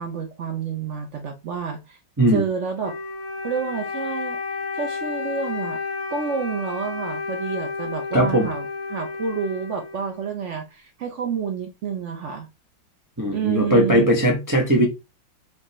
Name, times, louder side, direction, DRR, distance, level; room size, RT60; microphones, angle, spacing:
voice 1, 0.0-2.0 2.3-2.9 3.4-4.4 4.7-5.8 6.1-12.5 13.3-14.1, right 6 dB, 70° right, 0.7 m, -29 dB
Wind instrument woodwind instrument, 2.8-10.4, left 4 dB, 45° left, 1.0 m, -31 dB
voice 2, 8.1-8.5 13.2-14.8, equal, 15° right, 0.7 m, -19 dB
5.0 x 3.2 x 3.0 m
omnidirectional pair, 2.0 m